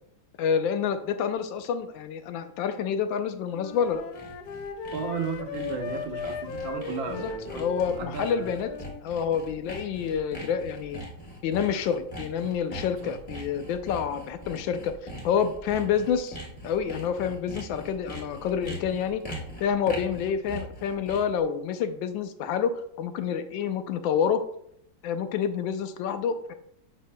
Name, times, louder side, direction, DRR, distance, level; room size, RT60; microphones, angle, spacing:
voice 1, 0.4-4.0 7.1-8.7 9.0-11.0 11.4-16.4 16.6-19.2 19.6-24.4 25.0-26.5, left 7 dB, 90° left, 9 dB, 1.4 m, -28 dB
Wind instrument woodwind instrument, 3.5-9.0, left 5 dB, 70° left, 0.9 m, -37 dB
Sawing, 3.6-21.4, equal, 25° left, 1.1 m, -42 dB
voice 2, 4.9-8.5, right 5 dB, 85° right, 4 dB, 1.6 m, -34 dB
8.2 x 5.4 x 2.2 m, 0.70 s
omnidirectional pair, 2.0 m